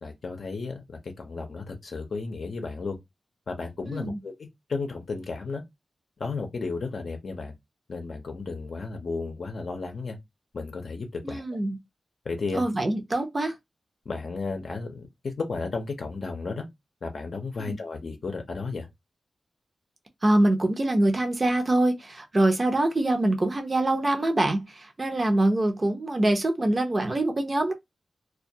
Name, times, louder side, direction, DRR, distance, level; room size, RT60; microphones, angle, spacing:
voice 1, 0.0-3.0 3.5-5.6 6.2-7.5 7.9-10.2 10.5-11.4 12.2-12.6 14.1-16.7 17.0-18.9, left 4 dB, 65° left, 0.6 m, -33 dB
voice 2, 3.9-4.2 11.2-11.8 12.5-13.5 17.6-17.8 20.2-27.7, right 1 dB, 35° right, 0.6 m, -24 dB
2.3 x 2.2 x 2.7 m
wide cardioid pair, 80°, 0 cm